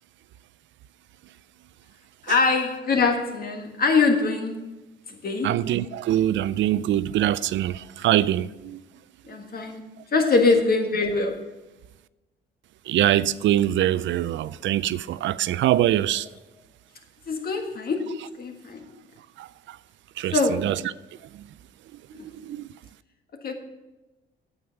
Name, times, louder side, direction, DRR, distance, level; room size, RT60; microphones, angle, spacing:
voice 1, 2.2-4.7 5.1-5.5 9.2-9.8 10.1-11.4 17.3-18.8 20.3-20.7 22.1-22.2 23.4-23.5, left 4 dB, 50° left, 1.7 m, -23 dB
voice 2, 5.4-8.8 12.9-16.3 19.4-19.5 20.2-20.7 22.4-22.7, right 12 dB, 70° right, 0.4 m, -23 dB
9.4 x 8.1 x 5.8 m
cardioid pair, 90°, 20 cm